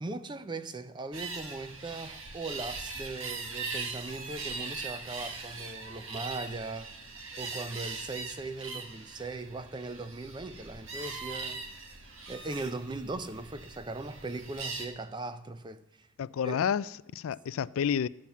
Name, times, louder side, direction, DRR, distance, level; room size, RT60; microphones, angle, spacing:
voice 1, 0.0-6.9 7.4-11.6 12.3-16.1 16.4-16.6, right 3 dB, 20° right, 0.5 m, -39 dB
sound 1, 1.1-14.9, right 4 dB, 70° right, 1.4 m, -41 dB
voice 2, 16.2-18.1, left 7 dB, 90° left, 0.3 m, -30 dB
12.0 x 7.4 x 7.2 m
head